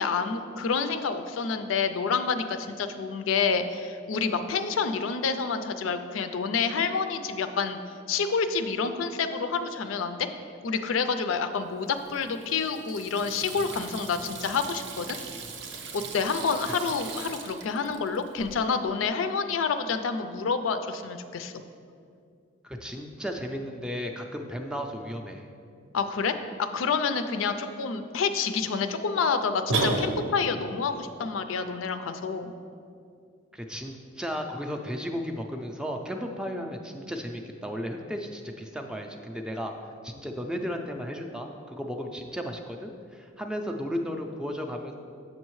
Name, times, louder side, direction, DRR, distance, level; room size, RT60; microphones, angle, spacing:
voice 1, 0.0-7.8 8.1-10.3 10.6-15.2 15.9-21.6 25.9-32.5, left 5 dB, 85° left, 9 dB, 0.4 m, -28 dB
Water tap faucet / Sink (filling or washing), 11.8-18.6, right 5 dB, 60° right, 0.6 m, -41 dB
voice 2, 22.6-25.5 33.5-39.7 40.0-45.0, equal, 5° right, 3 dB, 0.3 m, -34 dB
sound 1, 29.7-30.6, right 2 dB, 85° right, 0.8 m, -26 dB
7.6 x 6.3 x 3.1 m, 2.3 s
head